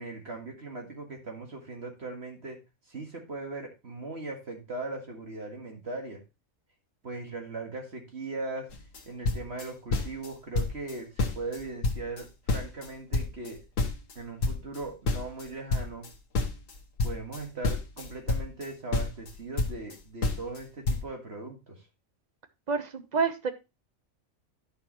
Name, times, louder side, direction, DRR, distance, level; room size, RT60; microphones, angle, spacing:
voice 1, 0.0-2.6 2.9-6.2 7.0-8.7 9.1-13.6 14.2-16.1 17.0-21.8, right 3 dB, 55° right, 2 dB, 2.1 m, -39 dB
sound 1, 8.7-9.0 9.2-10.3 10.5-10.9 11.2-12.9 13.1-16.1 16.3-18.7 18.9-19.9 20.2-20.6 20.9-21.0, left 3 dB, 85° left, 1.6 m, -29 dB
voice 2, 22.7-23.5, right 5 dB, 35° right, 9 dB, 1.0 m, -28 dB
11.0 x 6.4 x 3.0 m, 0.26 s
omnidirectional pair, 1.3 m